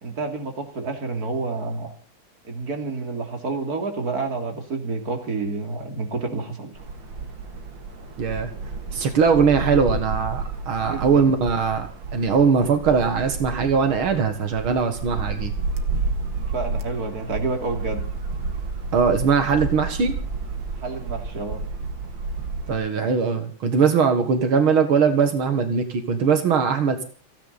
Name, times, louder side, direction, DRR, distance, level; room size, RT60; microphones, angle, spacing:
voice 1, 0.0-1.9 2.4-6.7 10.8-11.3 16.4-18.0 20.8-21.6, right 3 dB, 45° right, 4 dB, 3.4 m, -29 dB
sound 1, 6.7-22.7, right 3 dB, 65° right, 2.4 m, -31 dB
voice 2, 8.2-8.5 8.9-15.5 18.9-20.2 22.7-27.0, right 6 dB, 85° right, 7 dB, 2.5 m, -21 dB
29.5 x 10.0 x 4.2 m, 0.38 s
omnidirectional pair, 2.2 m